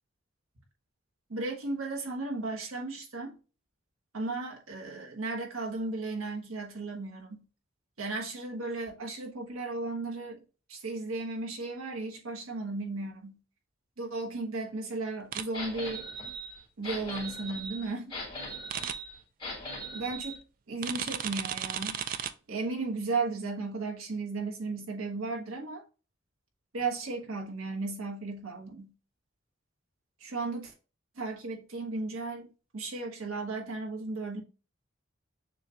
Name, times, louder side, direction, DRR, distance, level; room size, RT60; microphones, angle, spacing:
voice 1, 1.3-3.4 4.1-7.4 8.0-10.4 10.7-13.4 14.0-16.0 16.8-18.1 19.9-22.0 22.5-25.8 26.7-28.9 30.2-30.7 31.2-34.4, right 3 dB, 85° right, 1.2 m, -35 dB
sound 1, 15.3-15.4 18.7-18.9 20.8-22.3, right 9 dB, 40° right, 0.3 m, -34 dB
sound 2, 15.5-20.4, right 1 dB, 25° left, 1.5 m, -40 dB
6.6 x 2.4 x 2.9 m
head